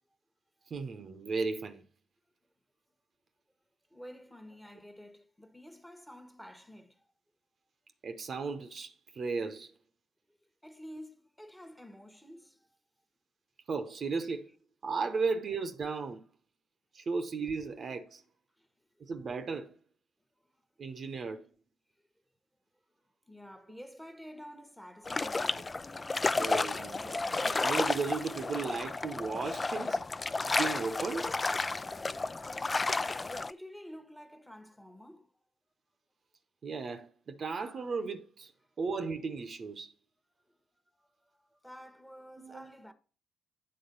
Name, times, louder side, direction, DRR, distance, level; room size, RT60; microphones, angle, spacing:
voice 1, 0.7-1.8 8.0-9.7 13.7-14.5 14.8-16.2 16.9-18.2 19.0-19.7 20.8-21.5 26.3-30.0 30.4-31.3 36.6-38.5 38.8-39.9 42.4-42.7, right 4 dB, 50° right, 0.8 m, -35 dB
voice 2, 3.9-7.1 10.3-10.4 10.6-12.8 18.6-18.7 23.3-25.7 33.5-35.3 41.0-42.9, equal, 5° left, 1.1 m, -50 dB
sound 1, 25.0-33.5, left 3 dB, 30° left, 0.4 m, -32 dB
8.8 x 3.6 x 5.3 m
hypercardioid pair, 45°, 0 cm